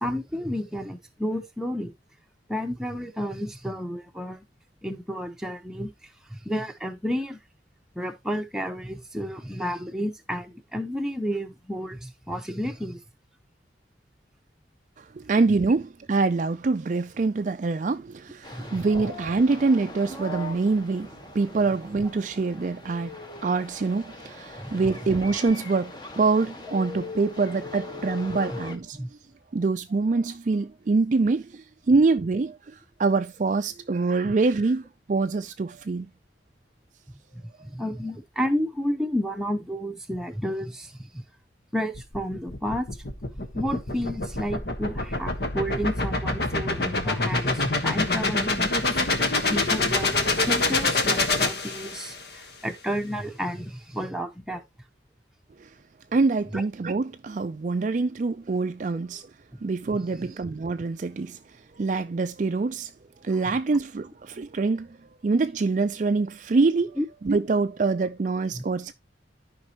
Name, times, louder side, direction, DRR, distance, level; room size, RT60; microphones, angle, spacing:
voice 1, 0.0-1.9 2.5-4.4 4.8-5.9 6.3-7.4 7.9-13.0 18.5-18.7 24.6-24.7 28.9-29.1 37.6-41.2 41.7-42.9 43.5-49.0 49.5-54.6 56.5-56.6 67.0-67.1 68.5-68.6, equal, 5° right, 0.9 m, -31 dB
voice 2, 15.0-29.0 29.5-36.1 55.6-55.7 56.1-59.3 59.6-61.4 61.7-62.9 63.2-65.0 65.2-68.9, right 3 dB, 45° right, 0.4 m, -25 dB
sound 1, 18.4-28.8, left 2 dB, 25° left, 1.2 m, -40 dB
sound 2, 41.9-52.3, left 2 dB, 60° left, 1.4 m, -26 dB
13.0 x 5.2 x 2.9 m
head